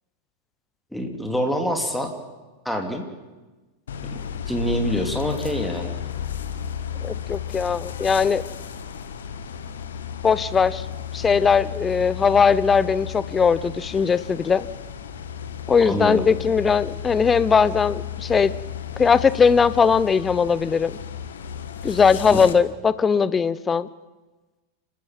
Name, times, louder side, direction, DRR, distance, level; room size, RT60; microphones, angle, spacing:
voice 1, 0.9-2.1 2.6-3.0 4.5-6.0 15.8-16.2 22.3-22.4, equal, ahead, 3 dB, 3.1 m, -25 dB
sound 1, 3.9-22.5, left 9 dB, 65° left, 1.6 m, -34 dB
voice 2, 7.0-8.4 10.2-10.9 11.1-14.7 15.7-18.5 19.0-21.0 21.8-23.9, left 6 dB, 20° left, 17 dB, 0.8 m, -19 dB
29.0 x 14.5 x 7.6 m, 1.2 s
figure-of-eight pair, 90°, 0 cm